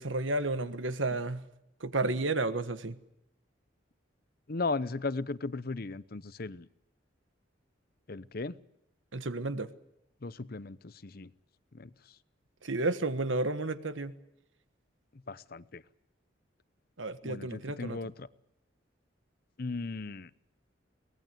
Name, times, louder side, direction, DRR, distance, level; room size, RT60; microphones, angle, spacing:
voice 1, 0.0-1.4 1.8-3.0 9.1-9.7 12.6-14.1 17.0-18.0, right 2 dB, 85° right, 1.4 m, -32 dB
voice 2, 4.5-6.7 8.1-8.6 10.2-11.3 11.7-11.9 15.3-15.8 17.2-18.3 19.6-20.3, left 3 dB, 50° left, 0.8 m, -36 dB
23.5 x 19.0 x 7.8 m
head